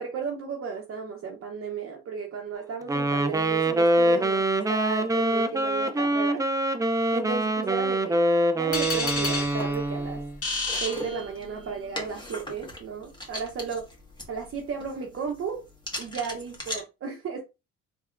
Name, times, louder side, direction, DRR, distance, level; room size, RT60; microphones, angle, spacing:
voice 1, 0.0-6.4 7.1-8.2 8.5-10.2 10.8-13.9 14.3-15.6 16.0-17.4, right 5 dB, 45° right, 0.8 m, -34 dB
Wind instrument woodwind instrument, 2.9-10.3, right 1 dB, 10° right, 0.4 m, -25 dB
sound 1, 8.7-11.8, left 3 dB, 50° left, 1.7 m, -31 dB
sound 2, 8.9-16.8, left 1 dB, 15° left, 1.4 m, -41 dB
3.5 x 3.4 x 2.4 m
cardioid pair, 90°, 30 cm